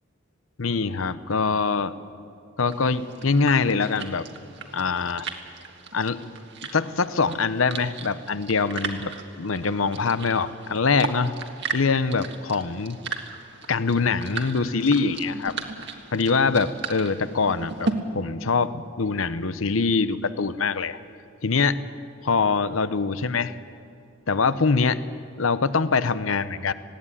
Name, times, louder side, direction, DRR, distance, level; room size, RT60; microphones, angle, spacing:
voice 1, 0.6-1.9 2.6-4.2 4.7-5.3 5.9-6.2 6.7-9.1 9.4-11.3 11.7-13.0 13.7-15.6 16.1-21.0 21.4-21.8 22.2-23.5 24.3-25.0 25.4-26.7, left 4 dB, 75° left, 14 dB, 0.8 m, -23 dB
sound 1, 2.7-17.9, right 4 dB, 55° right, 1.7 m, -36 dB
19.5 x 16.5 x 9.9 m, 2.4 s
head